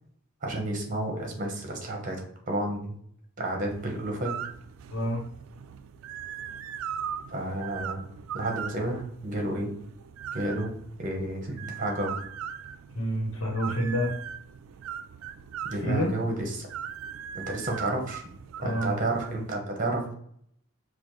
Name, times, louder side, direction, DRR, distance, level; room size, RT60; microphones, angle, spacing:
voice 1, 0.4-3.0 3.4-4.3 7.3-8.0 8.3-9.7 10.3-10.7 11.0-12.2 15.7-16.7 17.3-18.2 18.6-20.1, right 1 dB, 40° right, 1 dB, 0.9 m, -31 dB
sound 1, 3.7-19.5, right 8 dB, 80° right, 0.3 m, -40 dB
voice 2, 4.9-5.2 13.0-14.1 15.8-16.1 18.6-19.0, equal, 90° left, 0 dB, 0.9 m, -28 dB
4.9 x 2.1 x 3.0 m, 0.66 s
head